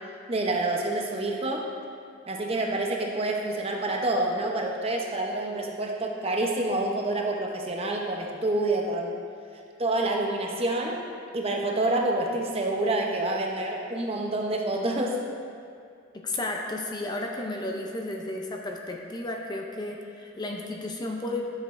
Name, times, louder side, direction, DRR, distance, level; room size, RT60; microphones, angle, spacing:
voice 1, 0.3-1.7 2.3-9.1 9.8-11.0 11.3-15.2, right 2 dB, 30° right, 0 dB, 0.7 m, -27 dB
voice 2, 16.1-21.4, left 2 dB, 20° left, 1 dB, 0.5 m, -33 dB
11.0 x 6.7 x 2.6 m, 2.3 s
head